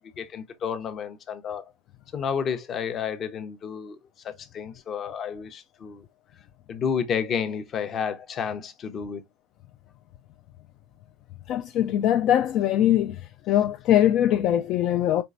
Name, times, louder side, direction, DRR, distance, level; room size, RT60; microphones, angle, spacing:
voice 1, 0.2-1.7 2.1-4.0 4.2-6.0 6.7-9.2, left 7 dB, 35° left, 0.7 m, -31 dB
voice 2, 11.5-13.2 13.5-15.2, left 11 dB, 50° left, 0.3 m, -21 dB
4.5 x 3.2 x 2.4 m
supercardioid pair, 130°, 0 cm